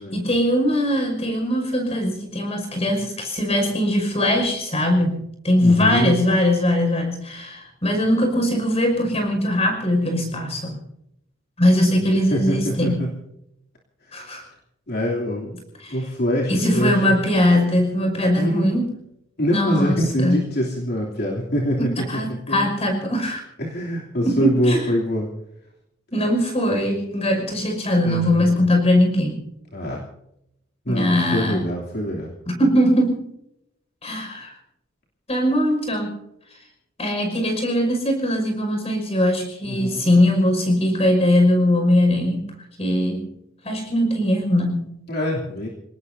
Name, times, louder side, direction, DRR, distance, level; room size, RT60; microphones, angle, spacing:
voice 1, 0.0-10.8 11.6-13.0 14.1-14.4 15.8-16.0 16.5-18.9 19.5-20.4 21.8-23.4 24.2-24.8 26.1-29.4 30.9-31.6 32.5-33.2 34.0-34.5 35.3-36.2 37.0-42.5 42.8-43.3 43.6-44.9, left 1 dB, 35° left, 4 dB, 5.6 m, -21 dB
voice 2, 5.6-6.2 12.3-13.1 14.1-14.3 14.9-15.5 15.9-17.0 18.3-18.8 19.4-22.7 23.6-25.3 28.0-28.6 29.7-30.0 30.9-32.3 39.6-40.1 45.1-45.7, equal, 55° left, -2 dB, 3.0 m, -24 dB
28.5 x 18.5 x 2.8 m, 0.80 s
head